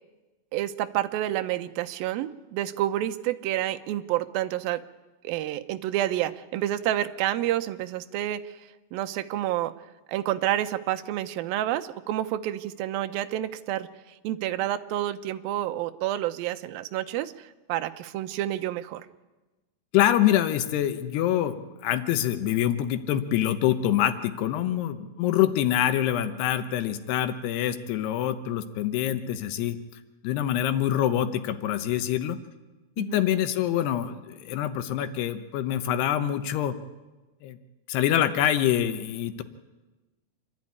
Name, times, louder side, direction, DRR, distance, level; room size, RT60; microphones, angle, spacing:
voice 1, 0.5-4.8 5.2-8.6 8.9-9.7 10.1-19.1 24.8-24.9 33.0-33.2, right 13 dB, 75° right, 9 dB, 2.4 m, -29 dB
voice 2, 19.9-29.8 30.2-32.4 33.0-36.8 37.4-37.6 37.9-39.4, left 11 dB, 85° left, 10 dB, 3.1 m, -25 dB
27.0 x 12.0 x 9.5 m, 1.2 s
omnidirectional pair, 4.6 m